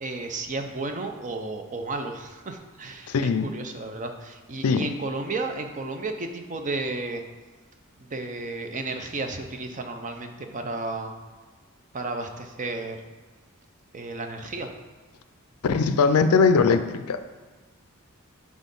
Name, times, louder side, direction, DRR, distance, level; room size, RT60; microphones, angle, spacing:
voice 1, 0.0-7.2 8.0-11.1 11.9-13.0 13.9-14.7, right 2 dB, 35° right, 5 dB, 0.6 m, -33 dB
voice 2, 3.1-3.5 4.6-4.9 15.6-17.2, left 5 dB, 90° left, 10 dB, 0.4 m, -21 dB
6.2 x 3.7 x 5.3 m, 1.3 s
head